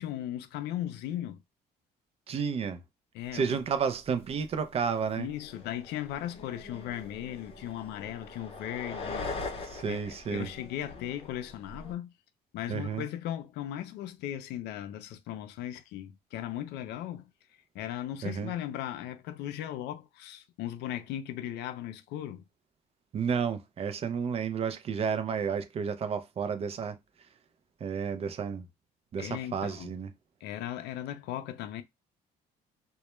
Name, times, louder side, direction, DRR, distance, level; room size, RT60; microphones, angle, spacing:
voice 1, 0.0-1.4 3.1-3.6 5.2-9.3 9.9-12.1 12.5-17.3 17.7-22.4 29.2-29.9 30.4-31.8, left 12 dB, 85° left, 0.4 m, -37 dB
voice 2, 2.3-2.8 3.3-5.3 9.6-10.5 12.7-13.1 18.2-18.5 23.1-27.0 27.8-28.7 29.1-30.1, right 6 dB, 35° right, 0.4 m, -31 dB
sound 1, 3.6-3.7 4.0-4.6 5.0-11.9, left 3 dB, 35° left, 0.7 m, -42 dB
2.2 x 2.1 x 3.0 m
cardioid pair, 110°, 17 cm